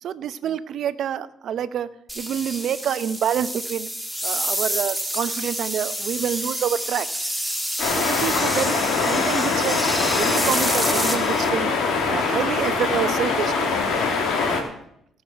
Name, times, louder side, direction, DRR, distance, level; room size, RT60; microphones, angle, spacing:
voice 1, 0.0-1.9 2.2-3.9 4.2-7.1 7.9-9.8 10.1-11.7 12.1-13.8, right 9 dB, 60° right, 13 dB, 0.8 m, -27 dB
sound 1, 2.1-11.5, equal, ahead, 1.7 m, -28 dB
sound 2, 7.8-14.6, left 4 dB, 70° left, 2.6 m, -23 dB
17.0 x 6.2 x 6.7 m, 0.73 s
cardioid pair, 105°, 0 cm